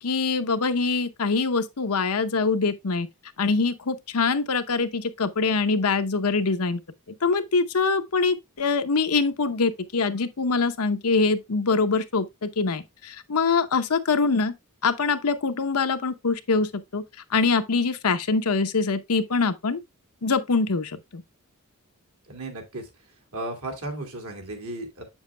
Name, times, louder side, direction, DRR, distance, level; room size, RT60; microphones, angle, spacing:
voice 1, 0.0-3.1 3.4-6.8 7.2-14.5 14.8-17.0 17.3-19.8 20.2-21.2, left 4 dB, 80° left, 0.8 m, -24 dB
voice 2, 22.3-22.8 23.3-25.0, right 2 dB, 70° right, 2.4 m, -34 dB
7.4 x 7.2 x 2.2 m
head